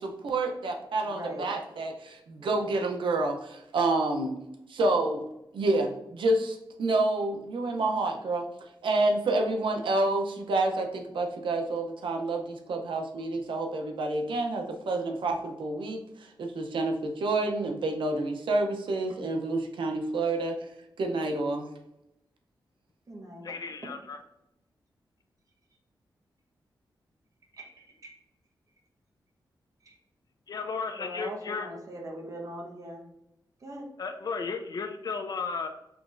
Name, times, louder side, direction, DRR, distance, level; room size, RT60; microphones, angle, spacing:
voice 1, 0.0-4.4 4.7-5.2 5.5-8.5 8.8-20.6 21.0-21.7, right 2 dB, 90° right, 4 dB, 0.6 m, -28 dB
voice 2, 1.0-1.5 2.4-2.6 23.1-23.9 27.5-28.1 29.8-30.0 31.0-33.0 33.6-33.9, right 1 dB, 45° right, 0 dB, 1.0 m, -41 dB
voice 3, 23.4-24.2 30.5-31.7 34.0-35.7, left 5 dB, 50° left, 6 dB, 0.4 m, -34 dB
6.0 x 3.0 x 2.5 m, 0.84 s
wide cardioid pair, 140°, 8 cm